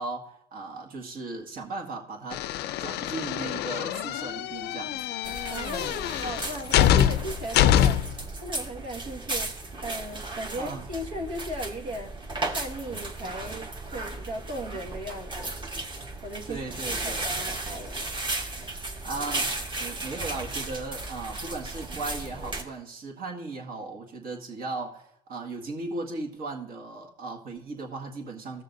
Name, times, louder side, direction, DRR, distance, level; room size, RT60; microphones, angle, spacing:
voice 1, 0.0-2.4 2.8-5.0 10.5-10.9 16.5-17.2 19.0-19.5 19.8-28.6, right 3 dB, 60° right, 0 dB, 1.8 m, -37 dB
sound 1, 2.3-8.2, left 11 dB, 75° left, 0.4 m, -25 dB
sound 2, 5.2-22.6, right 2 dB, 30° right, 1.4 m, -35 dB
voice 2, 5.5-8.0 8.4-9.5 9.8-12.1 12.5-15.5 16.2-16.6 17.0-18.1, right 1 dB, 80° right, 0 dB, 1.8 m, -37 dB
15.5 x 6.6 x 2.6 m, 0.79 s
cardioid pair, 110°, 17 cm